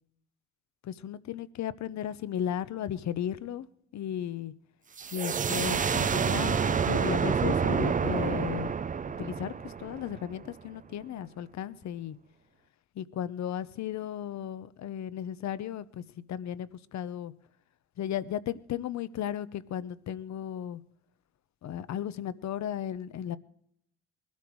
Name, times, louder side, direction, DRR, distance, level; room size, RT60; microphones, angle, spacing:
voice 1, 0.8-3.7 3.9-4.5 5.1-8.8 9.2-12.2 13.0-16.0 16.3-17.3 18.0-20.8 21.6-23.4, left 10 dB, 65° left, 0.9 m, -35 dB
sound 1, 5.0-10.5, right 6 dB, 25° right, 0.5 m, -28 dB
20.5 x 12.5 x 4.7 m
cardioid pair, 90°, 30 cm